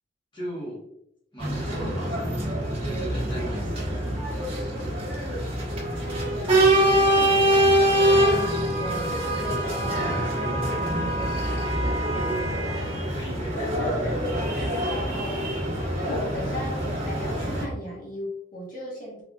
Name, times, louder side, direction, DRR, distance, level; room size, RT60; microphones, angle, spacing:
voice 1, 0.3-0.9 1.3-2.5 2.8-4.8 12.4-13.6, right 1 dB, 25° left, -7 dB, 1.2 m, -39 dB
sound 1, 1.4-17.7, right 1 dB, 30° right, 1.1 m, -24 dB
voice 2, 5.8-8.4 8.8-11.6 12.6-13.1 13.5-14.2 14.5-19.2, equal, 45° left, -5 dB, 1.3 m, -37 dB
3.8 x 3.4 x 2.3 m, 0.77 s
head